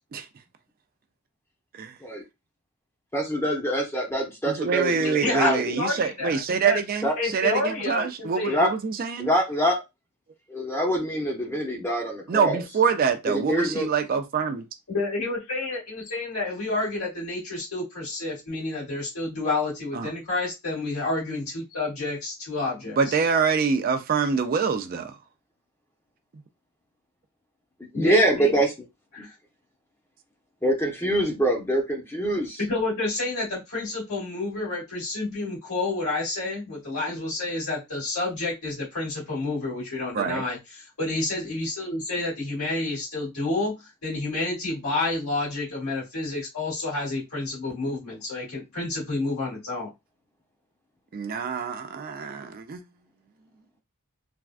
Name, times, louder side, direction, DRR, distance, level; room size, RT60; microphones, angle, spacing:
voice 1, 3.1-5.7 7.0-7.1 8.5-8.7 9.2-9.8 10.5-12.6 13.3-13.9 27.9-28.7 29.2-29.3 30.6-32.6, equal, 10° left, 0.7 m, -25 dB
voice 2, 4.5-9.3 12.3-14.6 19.9-20.1 23.0-25.1 40.1-40.4 51.1-52.8, right 6 dB, 40° right, 0.3 m, -25 dB
voice 3, 5.2-6.8 7.2-8.6 14.9-23.1 27.9-28.5 29.1-29.3 32.6-49.9, left 2 dB, 85° left, 1.9 m, -29 dB
3.4 x 2.2 x 2.4 m
head